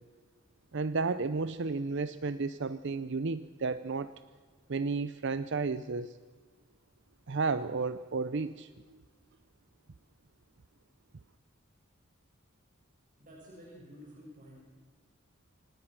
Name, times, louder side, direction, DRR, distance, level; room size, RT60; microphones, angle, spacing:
voice 1, 0.7-4.1 4.7-6.2 7.3-9.0, right 4 dB, 55° right, 14 dB, 0.6 m, -32 dB
voice 2, 13.2-14.6, equal, 40° right, -3 dB, 6.1 m, -51 dB
26.0 x 18.5 x 6.1 m, 1.5 s
head